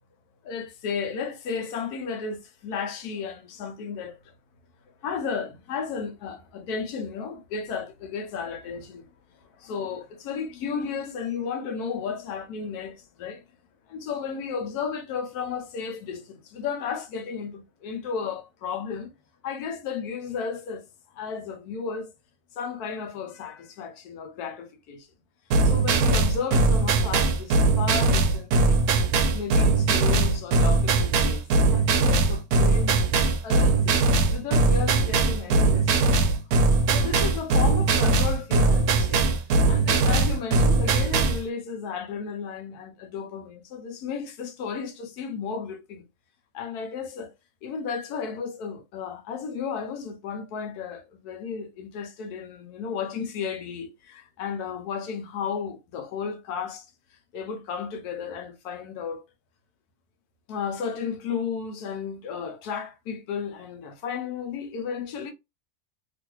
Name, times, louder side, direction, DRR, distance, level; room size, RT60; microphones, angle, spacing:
voice 1, 0.4-4.3 5.0-9.1 9.6-13.4 13.9-19.1 19.4-22.1 22.5-25.1 25.6-28.8 29.3-33.0 33.4-36.2 36.9-39.3 39.7-46.0 46.5-47.3 47.6-56.9 57.3-59.2 60.5-65.3, left 6 dB, 80° left, 1.2 m, -33 dB
sound 1, 25.5-41.4, right 3 dB, 80° right, 1.1 m, -21 dB
3.0 x 2.5 x 2.9 m
omnidirectional pair, 1.6 m